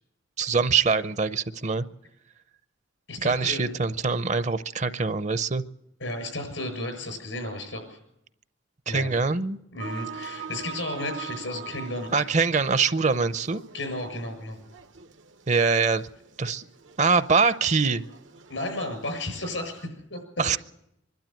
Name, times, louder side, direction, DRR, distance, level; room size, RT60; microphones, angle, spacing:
voice 1, 0.4-1.9 3.2-5.6 8.9-9.6 12.1-13.6 15.5-16.1 16.4-16.6 17.0-18.0 20.4-20.6, right 5 dB, 40° right, 13 dB, 0.7 m, -23 dB
voice 2, 3.1-3.7 6.0-8.0 8.9-9.1 9.7-12.1 13.7-14.6 18.5-20.2, left 2 dB, 85° left, 6 dB, 7.0 m, -33 dB
sound 1, 9.8-19.9, right 6 dB, 85° right, 1.1 m, -43 dB
24.5 x 12.0 x 9.0 m, 0.80 s
head